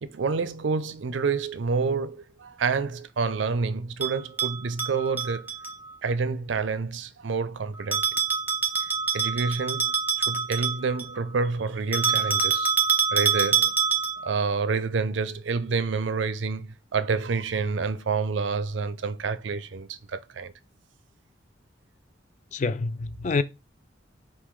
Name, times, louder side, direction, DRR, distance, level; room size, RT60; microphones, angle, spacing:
voice 1, 0.0-5.5 6.0-8.2 8.8-12.7 13.1-13.7 14.2-20.5, right 4 dB, 80° right, 0.5 m, -28 dB
Bell, 4.0-5.7 7.9-11.2 11.9-14.3, right 6 dB, 10° right, 0.6 m, -25 dB
voice 2, 22.5-23.4, left 4 dB, 40° left, 0.3 m, -26 dB
3.6 x 2.6 x 4.6 m
head